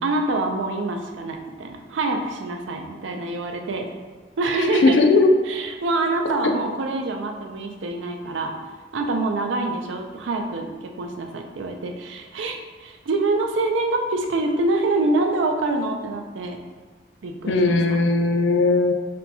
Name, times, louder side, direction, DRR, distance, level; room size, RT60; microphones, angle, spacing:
voice 1, 0.0-3.9 4.4-5.0 5.5-8.5 8.9-16.6 17.2-17.8, right 2 dB, 80° right, 4 dB, 0.4 m, -25 dB
voice 2, 4.6-5.3 6.4-6.5 17.5-18.9, left 3 dB, 70° left, 4 dB, 0.4 m, -18 dB
4.3 x 2.2 x 2.7 m, 1.4 s
head